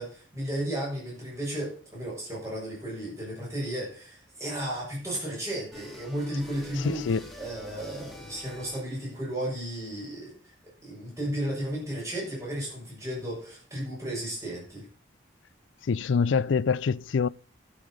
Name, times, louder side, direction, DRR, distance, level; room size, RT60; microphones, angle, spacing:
voice 1, 0.0-7.0 7.4-10.3 10.8-14.8, right 1 dB, 15° right, 6.8 m, -34 dB
sound 1, 5.7-9.1, left 1 dB, ahead, 2.1 m, -46 dB
voice 2, 6.8-7.2 15.8-17.3, left 5 dB, 70° left, 0.4 m, -25 dB
12.0 x 7.1 x 6.4 m
head